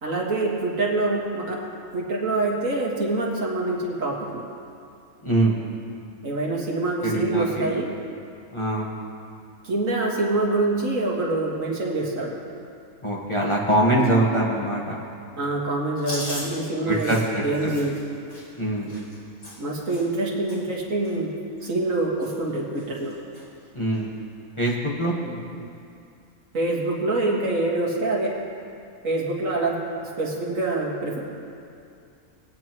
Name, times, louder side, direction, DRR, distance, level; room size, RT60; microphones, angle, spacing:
voice 1, 0.0-1.6 1.9-4.4 6.2-7.9 9.6-12.4 15.4-17.1 17.4-18.0 19.6-21.3 21.6-23.1 26.5-28.3 29.0-29.8 30.2-31.2, right 2 dB, 60° right, -3 dB, 2.1 m, -25 dB
voice 2, 5.2-5.6 7.0-7.8 8.5-8.9 13.0-15.0 16.9-17.7 18.6-18.9 23.7-24.1 24.6-25.1, right 1 dB, 20° left, -4 dB, 1.3 m, -23 dB
Chewing mastication, 16.0-20.2 20.5-20.8 21.0-21.9 22.2-22.5 22.8-23.4 23.9-24.0 25.1-25.5, left 1 dB, 75° left, 4.1 m, -39 dB
21.0 x 9.5 x 3.0 m, 2.5 s
omnidirectional pair, 1.5 m